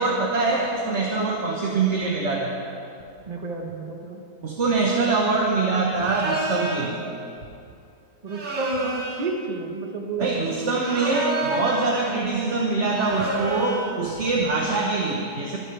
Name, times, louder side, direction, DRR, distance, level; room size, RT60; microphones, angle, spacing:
voice 1, 0.0-2.5 4.4-7.0 10.2-15.6, right 3 dB, 50° right, -1 dB, 1.5 m, -24 dB
voice 2, 3.3-4.2 8.2-10.3, right 3 dB, 25° right, 2 dB, 1.2 m, -31 dB
sound 1, 6.0-6.9 8.3-9.3 10.7-11.9 12.9-14.0, right 2 dB, 85° right, 2.4 m, -30 dB
24.0 x 11.5 x 3.4 m, 2.5 s
omnidirectional pair, 1.7 m